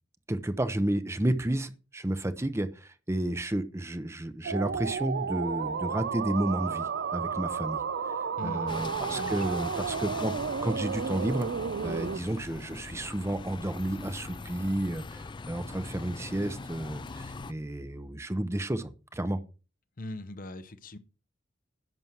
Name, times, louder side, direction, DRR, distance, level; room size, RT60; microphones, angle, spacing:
voice 1, 0.3-7.8 8.4-11.5 11.8-19.4, right 1 dB, 15° right, 0.7 m, -31 dB
sound 1, 4.4-12.2, right 6 dB, 60° right, 0.5 m, -32 dB
voice 2, 8.4-8.8 9.2-9.7 20.0-21.0, left 2 dB, 45° left, 0.8 m, -41 dB
Bus, 8.7-17.5, left 3 dB, 25° left, 0.4 m, -41 dB
11.0 x 6.2 x 5.8 m
head